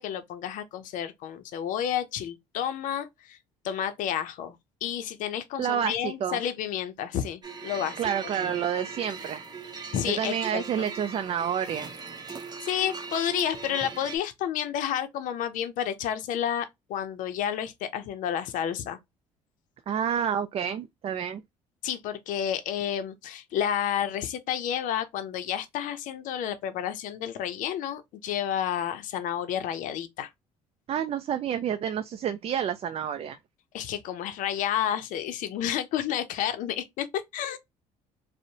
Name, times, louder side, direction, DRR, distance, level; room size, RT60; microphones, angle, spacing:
voice 1, 0.0-3.4 3.6-4.6 4.8-8.0 9.9-10.9 12.6-19.0 21.8-30.3 33.7-37.6, left 10 dB, 65° left, 0.5 m, -30 dB
voice 2, 5.6-6.4 8.0-9.4 10.0-11.9 19.9-21.4 30.9-33.4, right 8 dB, 45° right, 0.4 m, -29 dB
sound 1, 7.4-14.2, right 5 dB, 30° right, 0.7 m, -40 dB
2.6 x 2.0 x 2.7 m
supercardioid pair, 75°, 15 cm